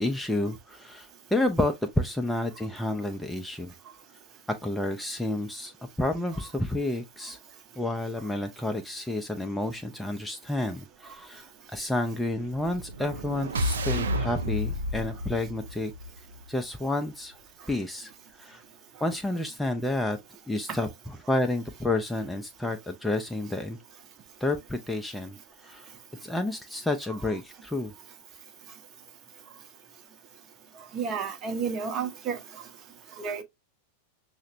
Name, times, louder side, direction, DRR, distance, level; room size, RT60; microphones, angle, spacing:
voice 1, 0.0-3.7 4.5-5.7 6.0-7.4 7.8-15.9 16.5-17.4 17.7-18.1 18.4-18.6 19.0-20.2 20.5-23.8 24.4-25.4 25.6-25.9 26.2-27.9, left 2 dB, 5° left, 0.4 m, -30 dB
sound 1, 12.5-16.6, equal, 70° right, 0.5 m, -31 dB
voice 2, 30.9-32.4 33.2-33.4, right 6 dB, 30° right, 0.7 m, -31 dB
5.6 x 2.1 x 2.5 m
figure-of-eight pair, 90°, 0 cm